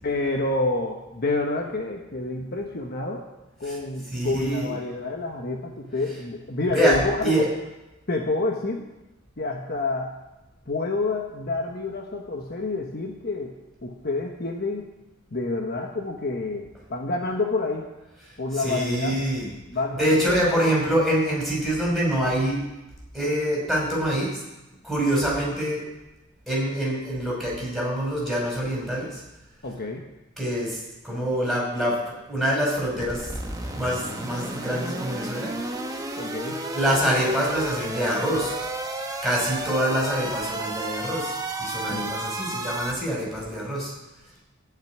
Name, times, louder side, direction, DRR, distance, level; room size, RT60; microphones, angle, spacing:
voice 1, 0.0-3.3 3.6-7.3 8.1-8.9 9.4-10.1 10.7-13.5 13.8-14.9 15.3-17.9 18.4-19.2 19.7-20.7 29.6-30.1 36.2-36.6 41.9-42.6, left 2 dB, 50° left, 2 dB, 1.2 m, -28 dB
voice 2, 4.1-4.7 6.7-7.4 18.6-19.5 20.0-22.6 23.1-24.3 24.8-25.8 26.5-29.2 30.4-30.8 31.0-32.0 32.3-33.3 33.7-35.5 36.7-38.5 39.2-43.9, right 1 dB, ahead, -4 dB, 5.2 m, -25 dB
sound 1, 33.0-42.9, right 2 dB, 20° right, 1.2 m, -32 dB
14.0 x 5.9 x 9.4 m, 1.0 s
head